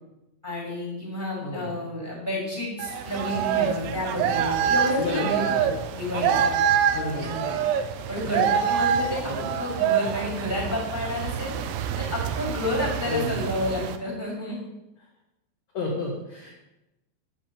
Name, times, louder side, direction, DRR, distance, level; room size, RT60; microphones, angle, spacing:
voice 1, 0.4-6.6 6.9-7.5 8.1-11.5 12.0-14.6, left 1 dB, 5° right, -3 dB, 5.1 m, -30 dB
voice 2, 1.4-1.9 5.0-5.6 6.2-6.4 6.9-7.6 9.3-9.5 13.1-13.4 15.7-16.5, left 2 dB, 55° left, -3 dB, 2.0 m, -32 dB
sound 1, 2.8-14.0, right 8 dB, 85° right, 3.5 m, -26 dB
8.8 x 8.2 x 8.5 m, 0.94 s
omnidirectional pair, 5.8 m